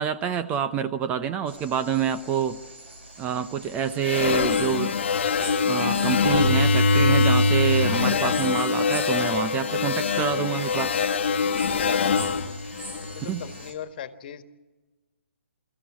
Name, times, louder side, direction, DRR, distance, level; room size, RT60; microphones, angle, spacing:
voice 1, 0.0-2.6 3.2-4.9 5.7-10.9 13.2-13.4, right 8 dB, 20° right, 12 dB, 0.7 m, -27 dB
sound 1, 1.5-13.7, right 2 dB, 70° right, 7.9 m, -44 dB
sound 2, 4.0-13.5, left 4 dB, 65° left, 1.2 m, -23 dB
voice 2, 13.1-14.4, left 9 dB, 50° left, 10 dB, 1.6 m, -38 dB
23.5 x 14.5 x 9.9 m, 1.2 s
hypercardioid pair, 140°, 7 cm